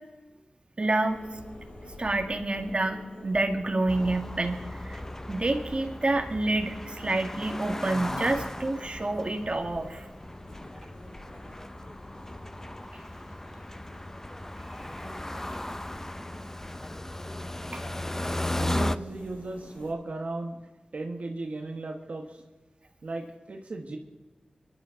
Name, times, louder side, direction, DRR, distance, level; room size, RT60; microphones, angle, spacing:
voice 1, 0.8-1.2 2.0-5.0 5.3-10.1 17.7-17.8, right 2 dB, 50° right, 5 dB, 1.9 m, -28 dB
sound 1, 1.0-19.9, left 1 dB, 60° left, 5.4 m, -49 dB
sound 2, 3.9-19.0, left 1 dB, 15° left, 0.6 m, -36 dB
voice 2, 18.5-20.6 20.9-22.4 23.0-24.0, right 2 dB, 75° right, 3 dB, 1.5 m, -36 dB
23.5 x 12.0 x 3.8 m, 1.1 s
cardioid pair, 45°, 2 cm